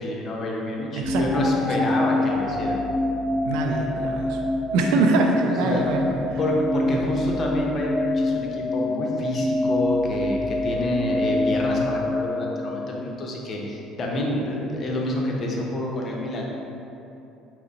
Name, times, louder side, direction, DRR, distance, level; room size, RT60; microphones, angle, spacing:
voice 1, 0.0-2.8 5.4-5.8 6.4-16.4, left 1 dB, 45° left, -1 dB, 0.7 m, -28 dB
sound 1, 1.0-13.1, left 2 dB, 25° right, 0.5 m, -26 dB
voice 2, 3.4-4.4 4.7-6.4, right 3 dB, 70° right, 2 dB, 0.4 m, -23 dB
4.9 x 2.1 x 3.9 m, 2.9 s
hypercardioid pair, 65°, 0 cm